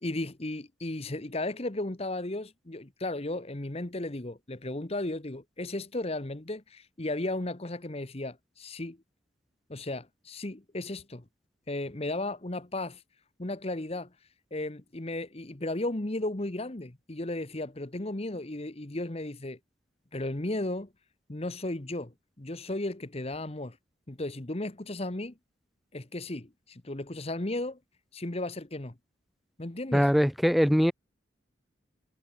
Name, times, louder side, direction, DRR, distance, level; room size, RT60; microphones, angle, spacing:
voice 1, 0.0-9.0 9.7-11.2 11.7-13.0 13.4-14.1 14.5-19.6 20.1-20.9 21.3-23.8 24.1-25.3 25.9-27.8 28.1-28.9 29.6-30.1, left 2 dB, 35° left, 1.2 m, -35 dB
voice 2, 29.9-30.9, equal, ahead, 1.5 m, -22 dB
head